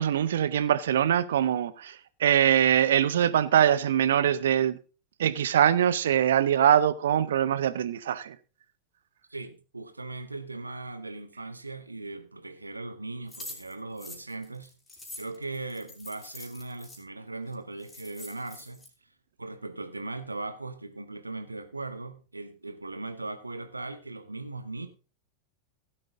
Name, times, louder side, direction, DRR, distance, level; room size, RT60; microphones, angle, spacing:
voice 1, 0.0-4.8 5.2-8.4, right 10 dB, 60° right, 0.8 m, -23 dB
voice 2, 9.3-14.7 15.2-18.8 19.4-24.9, right 2 dB, 80° right, 1.2 m, -38 dB
sound 1, 13.3-17.0 17.5-17.6 17.8-18.9, left 1 dB, 15° left, 3.7 m, -45 dB
16.5 x 7.7 x 3.6 m
figure-of-eight pair, 90°, 0 cm